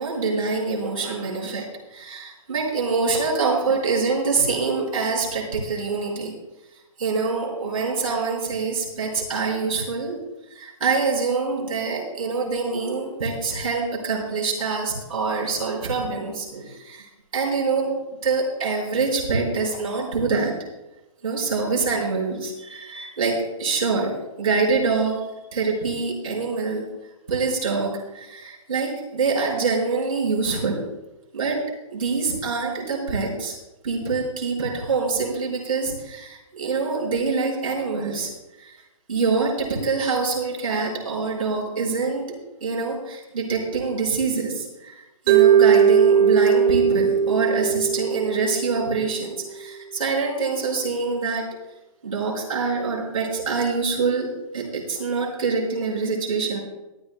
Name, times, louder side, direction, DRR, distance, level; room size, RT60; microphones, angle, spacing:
voice 1, 0.0-1.7 1.9-6.3 7.0-10.2 10.5-17.1 17.3-17.9 18.2-20.5 21.2-24.1 24.4-25.2 25.5-26.8 27.3-30.8 31.3-31.6 31.9-33.6 33.8-38.3 38.6-38.7 39.1-42.3 42.6-44.9 45.3-51.4 52.0-54.3 54.5-56.6, right 4 dB, 90° right, -3 dB, 5.0 m, -25 dB
Mallet percussion, 45.3-49.4, right 7 dB, 15° right, 0.5 m, -18 dB
23.0 x 10.5 x 2.2 m, 1.0 s
hypercardioid pair, 170°, 18 cm